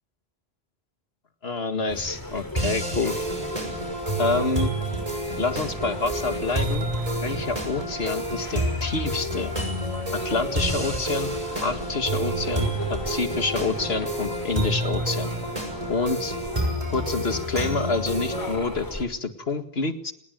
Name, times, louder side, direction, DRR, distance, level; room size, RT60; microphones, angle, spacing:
voice 1, 1.4-3.2 4.2-4.7 5.4-6.9 7.2-9.5 10.1-11.3 11.6-15.3 15.9-16.4 16.9-20.1, left 3 dB, 75° left, 9 dB, 2.2 m, -27 dB
sound 1, 1.9-19.1, left 1 dB, 20° left, 2.8 m, -37 dB
sound 2, 2.6-18.6, right 1 dB, 35° right, 6.5 m, -29 dB
28.0 x 20.5 x 9.3 m, 0.75 s
omnidirectional pair, 1.1 m